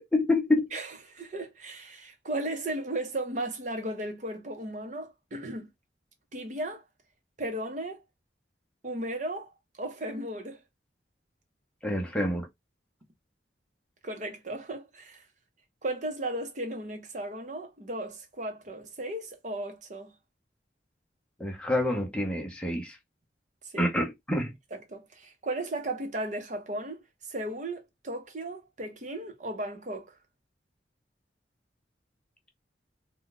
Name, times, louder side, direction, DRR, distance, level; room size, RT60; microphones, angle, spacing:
voice 1, 0.0-0.7 11.8-12.5 21.4-23.0 23.8-24.5, left 1 dB, 5° left, 0.7 m, -27 dB
voice 2, 0.7-5.7 6.3-6.8 7.4-8.0 8.8-9.5 9.8-10.6 14.0-15.2 15.8-20.1 23.6-23.8 24.7-27.0 27.3-30.2, right 1 dB, 45° right, 0.8 m, -35 dB
2.7 x 2.3 x 3.7 m
head